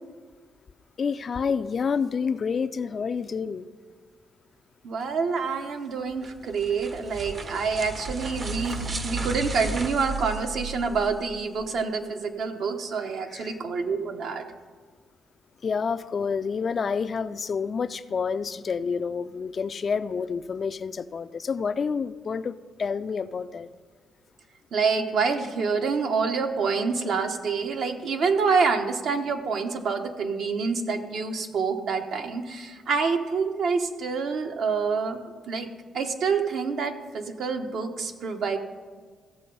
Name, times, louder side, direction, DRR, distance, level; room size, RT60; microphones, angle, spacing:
voice 1, 1.0-3.7 13.3-13.6 15.6-23.7, left 5 dB, 45° left, 0.4 m, -28 dB
voice 2, 4.8-14.4 24.7-35.2 35.5-38.6, right 5 dB, 65° right, 1.1 m, -27 dB
sound 1, 6.1-11.1, right 3 dB, 40° right, 0.8 m, -37 dB
sound 2, 7.4-11.7, right 3 dB, 90° right, 1.1 m, -36 dB
15.0 x 6.8 x 5.4 m
cardioid pair, 90°, 0 cm